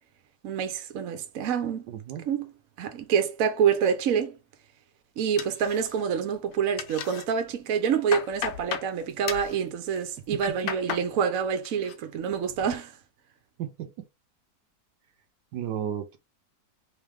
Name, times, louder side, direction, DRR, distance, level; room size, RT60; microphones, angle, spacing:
voice 1, 0.4-1.9 2.3-2.5 2.8-4.4 5.2-12.9, right 7 dB, 60° right, 1.2 m, -27 dB
voice 2, 1.9-2.3 10.6-10.7 13.6-14.1 15.5-16.2, right 9 dB, 75° right, 1.3 m, -34 dB
sound 1, 5.4-6.2 6.5-7.3 7.7-8.9 9.3-9.6 10.2-11.1 11.4-12.0 12.3-12.8, left 9 dB, 90° left, 1.4 m, -35 dB
4.0 x 3.4 x 3.5 m
omnidirectional pair, 1.8 m